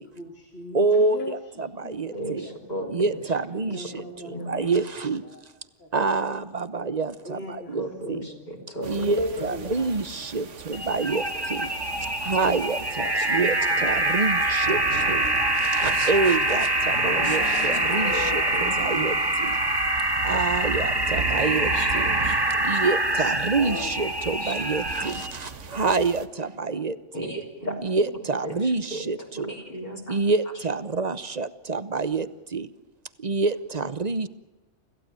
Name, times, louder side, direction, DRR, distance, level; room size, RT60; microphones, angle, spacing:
voice 1, 0.0-2.9 3.6-6.5 7.2-10.7, left 1 dB, 55° left, 2 dB, 3.2 m, -40 dB
voice 2, 0.7-2.5 2.9-5.2 5.9-7.4 7.7-8.3 8.9-11.7 12.2-14.8 15.1-15.3 15.5-19.6 20.2-22.1 22.6-27.3 27.8-29.5 30.1-32.7 33.2-34.3, right 3 dB, 35° right, 15 dB, 1.0 m, -27 dB
voice 3, 2.1-3.2 4.3-4.5 7.8-9.2 13.2-13.3 13.7-13.8 14.9-15.0 17.0-19.1 21.1-22.8 23.2-23.3 24.4-24.6 27.1-27.8 28.4-29.0 29.3-30.2, right 1 dB, 35° left, 0 dB, 3.7 m, -36 dB
sound 1, 8.8-26.3, right 5 dB, 75° right, 1.6 m, -38 dB
sound 2, 10.7-25.3, right 1 dB, 20° right, 1.8 m, -25 dB
sound 3, 16.6-19.3 19.6-19.7 20.0-20.1 20.3-20.5 21.7-21.8 23.5-24.4, left 6 dB, 85° left, 1.6 m, -37 dB
26.5 x 16.0 x 9.0 m, 1.1 s
omnidirectional pair, 1.3 m